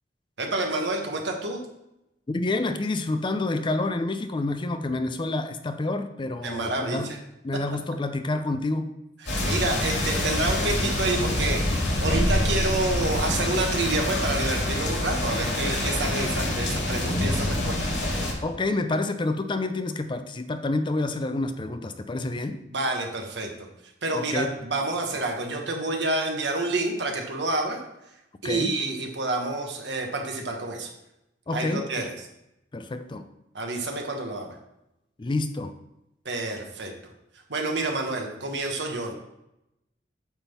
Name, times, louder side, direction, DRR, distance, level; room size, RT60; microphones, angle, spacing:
voice 1, 0.4-1.6 6.4-7.2 9.2-17.8 22.7-23.5 24.0-27.8 28.4-30.9 31.5-32.1 33.5-34.5 36.2-36.9 37.5-39.1, right 2 dB, 70° right, 2 dB, 1.3 m, -28 dB
voice 2, 2.3-7.1 7.4-8.9 18.4-22.6 24.1-24.5 28.4-28.7 31.5-32.1 32.7-33.2 35.2-35.7, left 2 dB, 25° left, 9 dB, 0.5 m, -28 dB
sound 1, 9.3-18.3, left 1 dB, 70° left, 2.5 m, -26 dB
8.9 x 3.6 x 5.8 m, 0.88 s
head